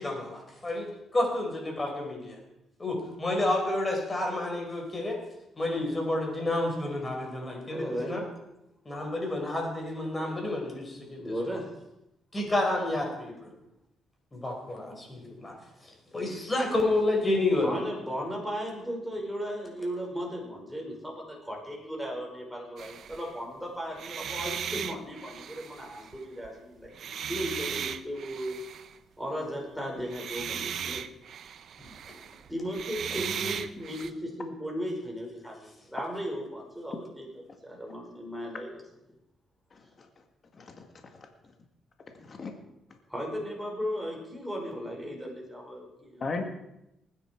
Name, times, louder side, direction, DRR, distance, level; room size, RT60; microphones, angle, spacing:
voice 1, 0.0-2.4 2.8-5.2 5.6-8.2 8.8-11.2 12.3-13.5 14.3-15.5 16.1-17.8, left 2 dB, 25° left, 1 dB, 5.0 m, -30 dB
voice 2, 7.7-8.2 11.2-11.7 17.6-28.6 29.2-31.0 32.5-37.3 37.6-38.7 39.1-39.2 43.1-46.4, equal, ahead, -1 dB, 5.4 m, -36 dB
sound 1, 22.8-23.4 23.9-26.5 26.8-29.0 30.0-34.1, right 8 dB, 65° right, 0.7 m, -37 dB
voice 3, 39.7-40.1 40.5-40.9 41.2-41.3 42.2-42.5 46.2-46.4, left 4 dB, 40° left, 4 dB, 1.9 m, -36 dB
19.5 x 9.9 x 4.6 m, 0.87 s
cardioid pair, 90°, 0 cm